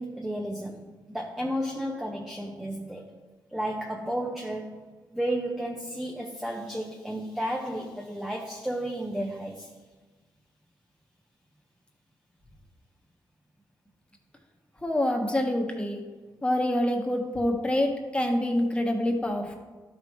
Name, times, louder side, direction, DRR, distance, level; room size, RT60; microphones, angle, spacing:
voice 1, 0.0-3.1 3.5-4.9 5.1-9.7, right 1 dB, 5° right, 0 dB, 0.8 m, -33 dB
voice 2, 14.8-16.0 16.4-19.6, left 1 dB, 15° left, 2 dB, 1.3 m, -26 dB
12.0 x 5.5 x 3.1 m, 1.3 s
cardioid pair, 85°, 8 cm